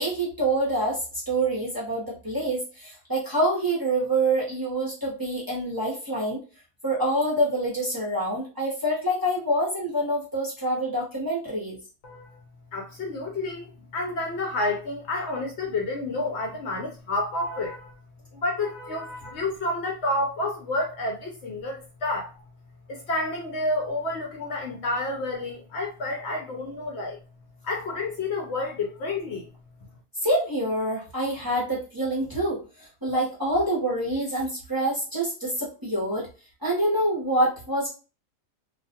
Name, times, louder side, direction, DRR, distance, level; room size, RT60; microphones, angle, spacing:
voice 1, 0.0-6.4 6.8-11.7 30.2-32.6 33.0-36.3 36.6-37.9, right 1 dB, 20° right, 0.8 m, -26 dB
voice 2, 12.0-12.4 12.7-17.9 18.3-22.3 22.9-27.2 27.6-29.5, left 2 dB, 65° left, 0.8 m, -30 dB
2.4 x 2.3 x 2.7 m
omnidirectional pair, 1.4 m